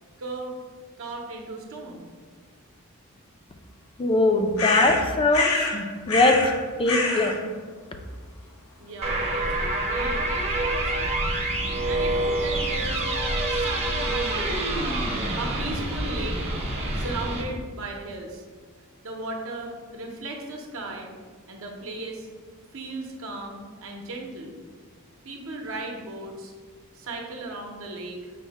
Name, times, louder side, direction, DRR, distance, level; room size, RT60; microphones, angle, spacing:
voice 1, 0.2-0.6 1.0-2.0 8.8-11.5 11.8-14.8 15.4-16.4 16.9-18.4 19.0-21.1 21.5-22.3 22.7-24.5 25.2-26.5 26.9-28.3, right 2 dB, 65° right, 1 dB, 0.7 m, -36 dB
voice 2, 4.0-6.4 6.8-7.5, left 2 dB, 25° left, 5 dB, 0.4 m, -22 dB
sound 1, 4.6-5.8 6.1-6.6 6.9-7.4, left 3 dB, 85° left, 0.8 m, -25 dB
sound 2, 9.0-17.4, right 1 dB, 30° right, 0.7 m, -26 dB
5.3 x 2.1 x 4.6 m, 1.5 s
head